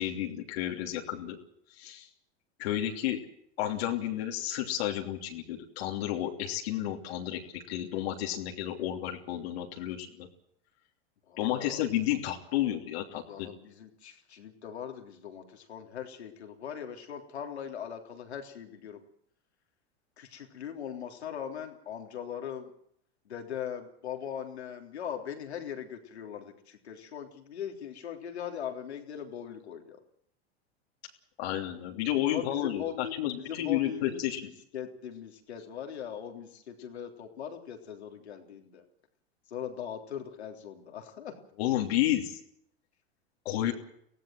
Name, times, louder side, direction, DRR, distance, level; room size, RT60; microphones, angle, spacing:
voice 1, 0.0-1.4 1.8-2.1 2.6-3.2 3.6-10.3 11.4-13.5 31.4-34.4 41.6-42.4 43.4-43.7, left 12 dB, 70° left, 1 dB, 3.1 m, -31 dB
voice 2, 11.3-11.9 13.3-19.0 20.2-22.7 23.3-30.0 32.3-38.9 39.5-41.4, left 8 dB, 85° left, 4 dB, 3.5 m, -40 dB
24.0 x 17.0 x 7.7 m, 0.72 s
hypercardioid pair, 95°, 32 cm